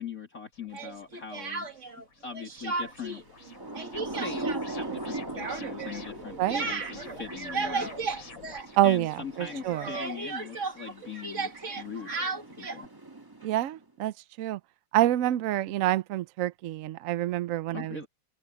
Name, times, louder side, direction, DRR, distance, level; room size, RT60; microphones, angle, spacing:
voice 1, 0.0-1.7 2.2-3.2 4.0-8.4 8.8-12.9 17.7-18.1, left 6 dB, 45° left, 3.3 m, -41 dB
sound 1, 0.5-12.0, left 5 dB, 80° left, 3.9 m, -50 dB
Speech, 0.7-2.0 2.3-3.2 3.5-9.2 9.4-12.9, right 4 dB, 40° right, 2.2 m, -35 dB
Thunder / Rain, 3.3-13.8, right 2 dB, 10° right, 1.4 m, -41 dB
voice 2, 6.4-6.7 8.8-9.1 9.7-9.8 13.4-14.1 14.4-14.6 14.9-18.0, right 14 dB, 85° right, 0.7 m, -26 dB
omnidirectional pair, 2.1 m